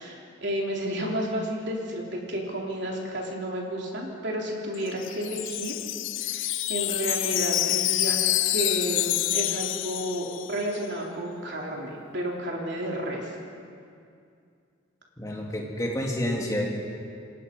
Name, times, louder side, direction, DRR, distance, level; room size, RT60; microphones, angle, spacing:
voice 1, 0.0-5.7 6.2-8.2 8.5-13.3, equal, 55° right, -2 dB, 3.8 m, -31 dB
Wind chime, 4.7-10.7, left 15 dB, 70° left, 0.5 m, -27 dB
voice 2, 15.2-16.6, left 1 dB, 15° left, -2 dB, 3.0 m, -29 dB
27.5 x 21.5 x 5.5 m, 2.4 s
head